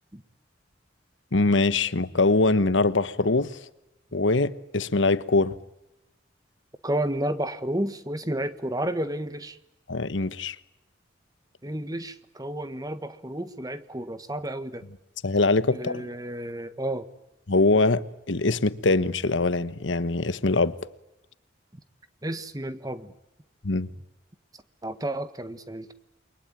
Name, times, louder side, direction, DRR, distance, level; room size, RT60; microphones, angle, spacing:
voice 1, 1.3-3.6 4.1-5.6 9.9-10.6 15.2-16.1 17.5-20.8 23.6-23.9, left 3 dB, 85° left, 1.2 m, -23 dB
voice 2, 6.8-9.6 11.6-14.8 15.7-17.1 22.2-23.1 24.8-25.9, right 1 dB, 20° right, 1.5 m, -31 dB
29.0 x 23.0 x 9.0 m
head